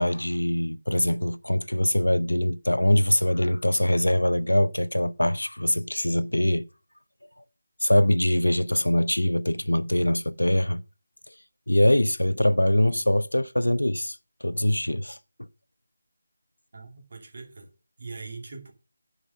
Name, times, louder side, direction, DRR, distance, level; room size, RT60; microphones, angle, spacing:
voice 1, 0.0-6.7 7.8-10.8 11.7-15.2, left 1 dB, 80° left, 0.7 m, -23 dB
voice 2, 16.7-17.7 18.0-18.7, right 4 dB, 45° right, 2.5 m, -41 dB
9.9 x 5.1 x 6.4 m
figure-of-eight pair, 160°, 0 cm